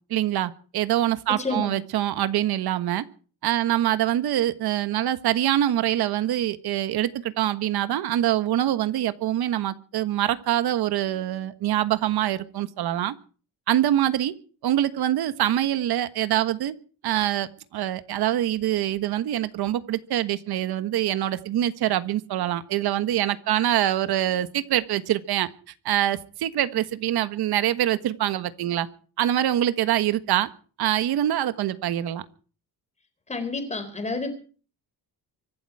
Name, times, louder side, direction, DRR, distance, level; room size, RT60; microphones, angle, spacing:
voice 1, 0.1-3.0 3.4-13.1 13.7-14.3 14.6-16.7 17.0-25.5 25.8-28.9 29.2-30.5 30.8-32.3, right 12 dB, 70° right, 12 dB, 1.5 m, -24 dB
voice 2, 1.4-1.7 33.3-34.3, left 3 dB, 15° left, 7 dB, 4.0 m, -29 dB
24.5 x 12.0 x 4.8 m, 0.40 s
cardioid pair, 150°, 40 cm